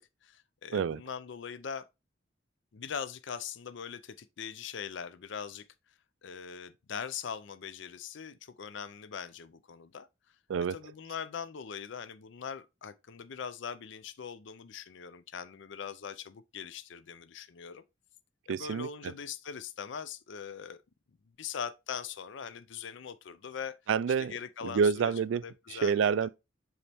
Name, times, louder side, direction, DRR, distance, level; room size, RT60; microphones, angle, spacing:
voice 1, 0.0-1.8 2.7-5.6 6.2-10.1 10.7-17.8 18.5-20.8 21.4-23.7 24.2-25.1 25.4-26.1, left 7 dB, 65° left, 0.5 m, -41 dB
voice 2, 18.5-19.1 23.9-24.3 24.6-26.3, right 6 dB, 70° right, 0.3 m, -28 dB
7.0 x 4.2 x 3.4 m
head